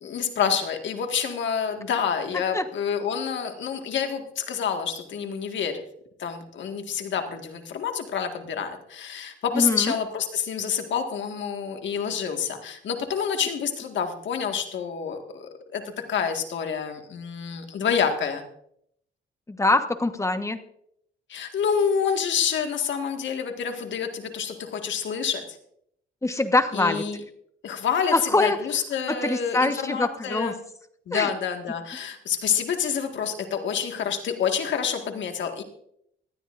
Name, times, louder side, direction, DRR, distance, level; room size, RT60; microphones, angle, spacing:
voice 1, 0.0-5.8 6.2-15.8 16.1-18.4 21.3-25.4 26.7-27.2 27.6-30.6 31.1-35.6, left 7 dB, 70° left, 5 dB, 1.8 m, -28 dB
voice 2, 9.5-9.9 19.5-20.6 26.2-27.0 28.1-28.6 29.1-30.5 31.1-31.3, left 2 dB, 15° left, 8 dB, 1.2 m, -23 dB
19.0 x 13.0 x 2.6 m, 0.70 s
cardioid pair, 90°, 20 cm